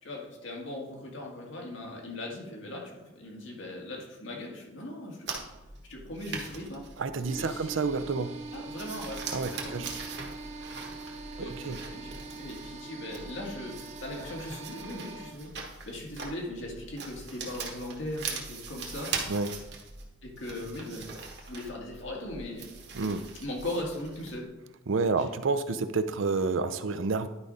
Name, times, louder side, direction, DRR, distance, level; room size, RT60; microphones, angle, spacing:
voice 1, 0.0-5.4 5.9-6.8 7.3-7.7 8.5-10.1 11.4-15.5 15.8-19.1 20.2-22.7 23.4-24.5 25.2-25.3, left 1 dB, 80° left, -1 dB, 1.9 m, -39 dB
sound 1, 5.3-24.4, right 5 dB, 60° right, 1.3 m, -42 dB
voice 2, 7.0-8.3 9.3-9.9 11.4-11.8 19.3-19.5 22.9-23.2 24.9-27.3, right 4 dB, 90° right, 11 dB, 0.6 m, -29 dB
sound 2, 7.3-15.3, right 3 dB, 35° right, 0.7 m, -43 dB
10.5 x 5.0 x 4.0 m, 1.0 s
head